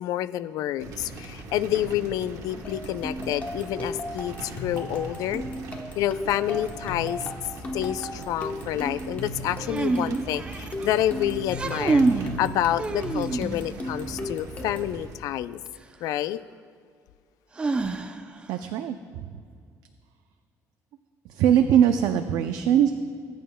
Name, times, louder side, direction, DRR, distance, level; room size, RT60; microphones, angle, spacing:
voice 1, 0.0-5.4 6.0-7.3 7.7-15.6 16.0-16.4, left 12 dB, 70° left, 15 dB, 0.3 m, -28 dB
sound 1, 0.8-15.2, right 3 dB, 60° right, 1.1 m, -40 dB
sound 2, 2.6-15.0, left 1 dB, 25° left, 0.9 m, -36 dB
sound 3, 9.6-10.9 11.4-12.3 12.8-13.7 15.7-15.8 17.6-18.4, right 3 dB, 15° right, 0.4 m, -26 dB
voice 2, 18.5-19.0 21.3-22.9, right 9 dB, 85° right, 7 dB, 0.4 m, -21 dB
19.5 x 9.0 x 2.2 m, 2.2 s
cardioid pair, 170°, 6 cm